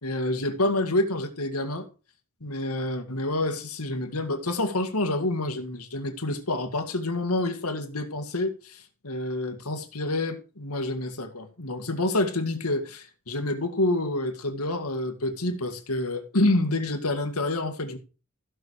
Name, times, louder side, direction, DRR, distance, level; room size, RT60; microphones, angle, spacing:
voice 1, 0.0-1.9 2.4-18.0, left 2 dB, 85° left, 2.1 m, -28 dB
15.5 x 6.4 x 4.9 m
head